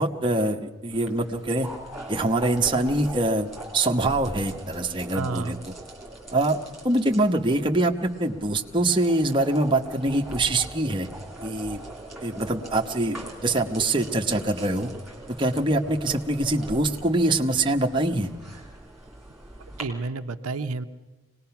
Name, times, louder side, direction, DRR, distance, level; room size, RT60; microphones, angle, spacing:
voice 1, 0.0-1.7 2.1-5.7 6.3-6.6 6.8-11.1 11.4-11.8 12.2-13.2 13.4-14.9 15.4-18.3, right 2 dB, 20° right, 2 dB, 0.9 m, -24 dB
sound 1, 0.9-19.8, right 1 dB, ahead, 3.0 m, -41 dB
voice 2, 5.1-5.6 19.8-20.9, right 3 dB, 80° right, 8 dB, 0.8 m, -30 dB
24.0 x 19.0 x 5.8 m, 1.2 s
head